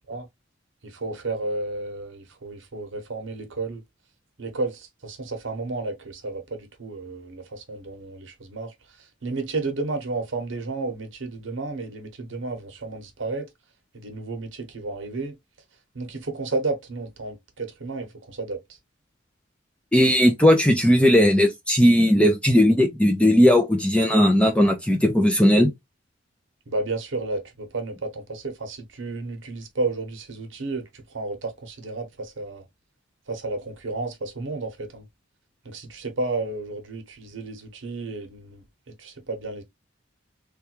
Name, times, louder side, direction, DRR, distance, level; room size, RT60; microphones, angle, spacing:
voice 1, 0.8-3.8 4.4-13.5 13.9-15.3 15.9-18.6 26.7-32.6 33.3-35.0 35.6-38.6 39.0-39.6, right 3 dB, 70° right, 0.9 m, -32 dB
voice 2, 19.9-25.7, equal, 5° left, 0.5 m, -17 dB
3.3 x 2.3 x 2.8 m
head